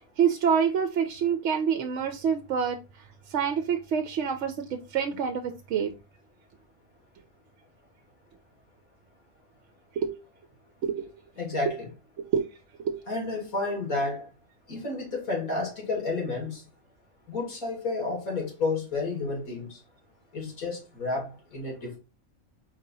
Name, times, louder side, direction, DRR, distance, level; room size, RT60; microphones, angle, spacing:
voice 1, 0.0-5.9 10.0-10.1 10.8-11.1 12.2-12.5 12.8-13.0, right 7 dB, 65° right, 0.8 m, -27 dB
voice 2, 11.4-11.9 13.1-14.3 14.7-16.6 17.3-19.8 20.3-22.0, left 3 dB, 85° left, 2.6 m, -31 dB
4.5 x 2.8 x 4.0 m
omnidirectional pair, 1.5 m